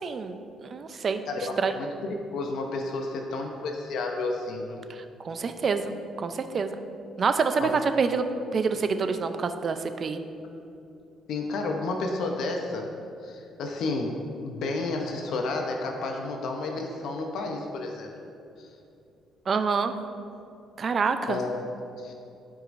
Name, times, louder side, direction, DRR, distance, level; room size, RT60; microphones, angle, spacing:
voice 1, 0.0-1.2 1.6-1.7 4.9-5.9 6.2-6.8 7.2-8.3 8.5-10.2 19.5-19.9 20.8-21.4, right 5 dB, 40° right, 8 dB, 0.5 m, -27 dB
voice 2, 1.3-4.8 7.6-7.7 11.3-12.9 13.2-18.1 18.6-18.7 21.2-21.6 22.0-22.1, left 3 dB, 75° left, 2 dB, 0.7 m, -31 dB
12.5 x 4.8 x 2.6 m, 2.6 s
cardioid pair, 115°, 0 cm